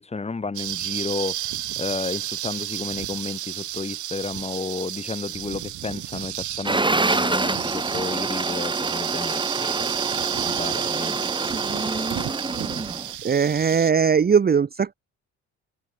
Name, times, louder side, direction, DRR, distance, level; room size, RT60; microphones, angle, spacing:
voice 1, 0.0-9.9 10.4-11.2, left 4 dB, 20° left, 1.6 m, -32 dB
sound 1, 0.5-13.9, right 13 dB, 75° right, 2.4 m, -31 dB
sound 2, 6.6-13.1, right 2 dB, 15° right, 2.5 m, -26 dB
voice 2, 13.2-14.9, right 6 dB, 30° right, 0.9 m, -19 dB
cardioid pair, 90°, 30 cm